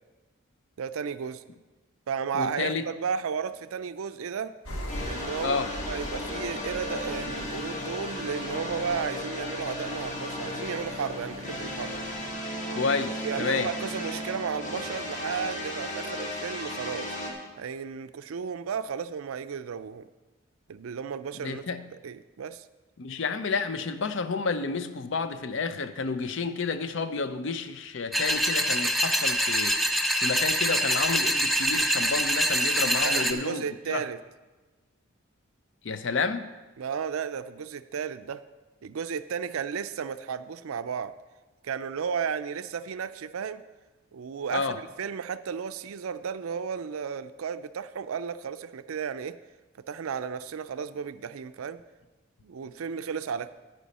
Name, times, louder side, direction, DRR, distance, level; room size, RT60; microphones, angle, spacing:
voice 1, 0.8-1.4 2.1-4.5 5.1-5.6 5.9-12.0 13.2-17.2 17.6-20.1 20.7-21.6 22.0-22.6 33.0-34.2 36.8-38.4 38.8-41.1 41.6-43.6 44.1-49.4 49.9-51.8 52.4-53.5, right 6 dB, 80° right, 0.4 m, -33 dB
voice 2, 2.3-2.9 5.4-5.7 12.7-13.7 21.4-21.8 23.0-29.8 30.2-34.1 35.8-36.5 44.5-44.8, left 4 dB, 60° left, 0.5 m, -30 dB
sound 1, 4.7-12.3, equal, 90° left, 1.7 m, -41 dB
sound 2, 4.9-17.3, left 1 dB, 35° left, 1.5 m, -35 dB
sound 3, 28.1-33.3, equal, ahead, 0.4 m, -25 dB
10.0 x 9.6 x 4.2 m
head